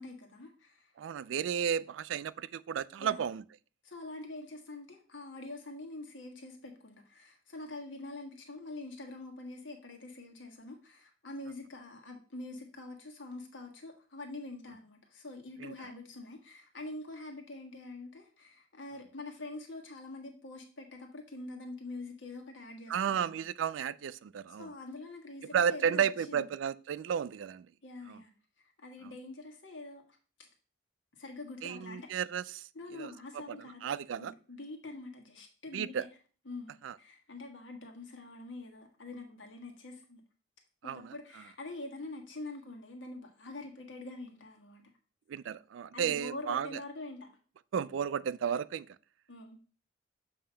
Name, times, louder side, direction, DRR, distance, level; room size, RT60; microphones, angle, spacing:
voice 1, 0.0-0.9 3.0-3.2 3.8-23.3 24.6-26.4 27.8-28.3 28.6-30.0 31.1-32.1 32.7-33.9 34.2-36.1 36.4-40.2 40.8-44.8 45.9-47.3 49.3-49.6, left 2 dB, 80° left, 1.5 m, -45 dB
voice 2, 1.0-3.4 15.6-15.7 22.9-24.7 25.4-27.7 28.1-28.2 29.0-29.1 31.6-33.1 33.5-34.3 35.7-36.0 36.8-37.0 40.8-41.1 45.3-46.8 47.7-49.0, right 8 dB, 80° right, 0.3 m, -33 dB
7.4 x 2.9 x 5.5 m
head